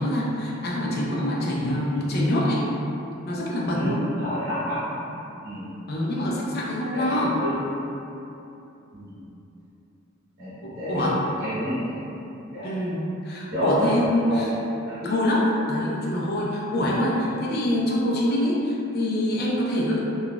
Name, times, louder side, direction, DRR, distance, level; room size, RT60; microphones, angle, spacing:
voice 1, 0.0-2.6 3.3-4.0 5.9-7.4 10.6-11.2 12.6-14.5 15.0-20.0, left 1 dB, 50° left, -4 dB, 0.5 m, -25 dB
voice 2, 3.7-4.9 5.4-5.7 6.9-7.8 8.9-9.2 10.4-12.2 12.5-12.7 13.5-14.5 15.0-15.1, equal, 50° right, -14 dB, 0.9 m, -28 dB
3.8 x 2.4 x 2.3 m, 2.9 s
head